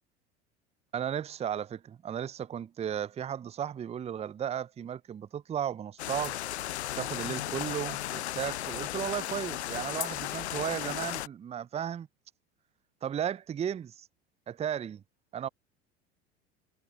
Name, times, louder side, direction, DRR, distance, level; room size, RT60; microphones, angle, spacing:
voice 1, 0.9-6.4 7.0-12.1 13.0-14.1 14.5-15.0 15.3-15.5, right 9 dB, 20° right, 0.7 m, -35 dB
sound 1, 6.0-11.3, left 13 dB, 70° left, 0.6 m, -35 dB
figure-of-eight pair, 75°, 34 cm